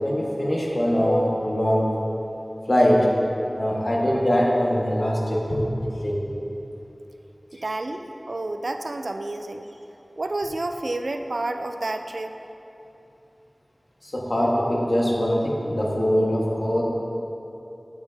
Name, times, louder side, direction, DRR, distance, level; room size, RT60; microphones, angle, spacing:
voice 1, 0.0-1.8 2.7-3.1 3.5-5.7 6.0-6.2 14.0-16.8, equal, 65° left, -4 dB, 1.5 m, -22 dB
voice 2, 7.5-9.7 10.2-12.3, right 2 dB, 80° right, 6 dB, 0.4 m, -30 dB
9.7 x 7.9 x 2.7 m, 2.9 s
wide cardioid pair, 55°, 0 cm